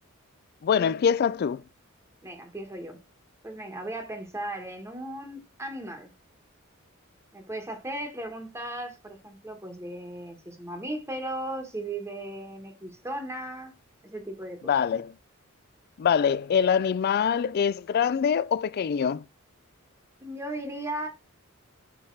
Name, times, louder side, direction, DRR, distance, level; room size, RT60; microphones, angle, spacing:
voice 1, 0.6-1.6 14.7-15.1 16.0-19.2, left 7 dB, 50° left, 0.3 m, -24 dB
voice 2, 2.2-3.0 3.4-6.1 7.3-13.7 14.0-14.7 20.2-21.1, right 1 dB, 15° right, 1.2 m, -36 dB
5.6 x 5.1 x 4.5 m
head